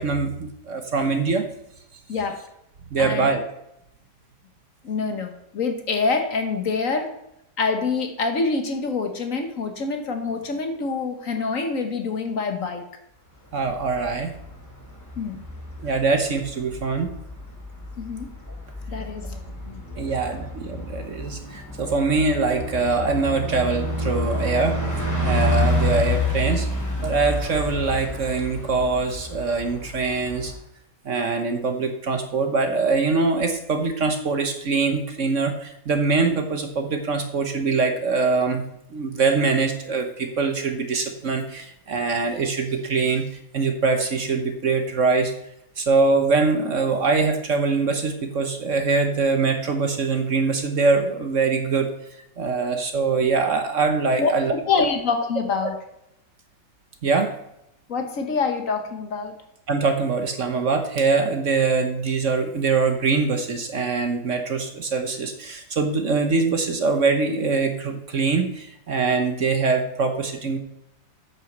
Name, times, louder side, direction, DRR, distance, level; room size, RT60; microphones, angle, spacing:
voice 1, 0.0-1.4 2.9-3.4 6.9-7.0 13.5-14.3 15.8-17.1 20.0-24.8 25.2-26.7 27.0-30.5 31.0-38.6 38.9-43.2 43.5-45.3 45.8-51.9 52.4-54.5 57.0-57.3 59.7-70.6, right 4 dB, 50° right, 6 dB, 1.2 m, -23 dB
voice 2, 3.0-3.3 4.8-7.1 7.6-12.8 15.2-15.4 18.0-18.3 18.9-20.0 54.2-54.3 54.6-55.7 57.9-59.3, left 4 dB, 55° left, 5 dB, 1.5 m, -26 dB
Bus, 13.5-30.6, left 1 dB, 10° left, 2.7 m, -29 dB
9.0 x 6.3 x 6.5 m, 0.79 s
omnidirectional pair, 1.8 m